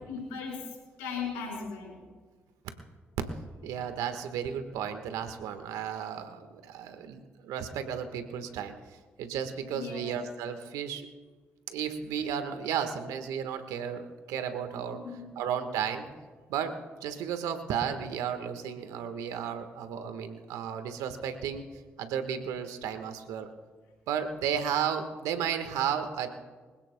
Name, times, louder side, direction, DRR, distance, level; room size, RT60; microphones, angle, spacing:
voice 1, 0.1-0.6 1.0-2.0 9.7-10.1 15.2-15.3, left 5 dB, 90° left, -2 dB, 4.4 m, -37 dB
voice 2, 3.6-8.8 9.2-11.1 11.7-15.0 15.3-16.1 16.5-16.7 17.0-21.6 22.0-23.5 24.1-26.3, right 8 dB, 80° right, 8 dB, 1.4 m, -33 dB
24.5 x 16.5 x 2.2 m, 1.4 s
hypercardioid pair, 40°, 6 cm